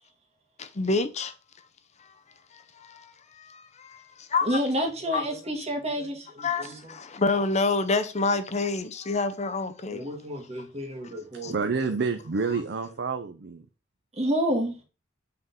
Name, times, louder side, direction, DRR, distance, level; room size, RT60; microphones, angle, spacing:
voice 1, 0.6-1.3 2.5-4.6 5.1-5.3 6.4-10.1 11.4-11.5, left 3 dB, 35° left, 0.7 m, -28 dB
voice 2, 4.4-6.8 9.9-11.5 14.2-14.8, equal, 35° right, 1.6 m, -29 dB
voice 3, 11.4-13.7, right 4 dB, 60° right, 0.6 m, -28 dB
5.7 x 3.8 x 5.6 m
head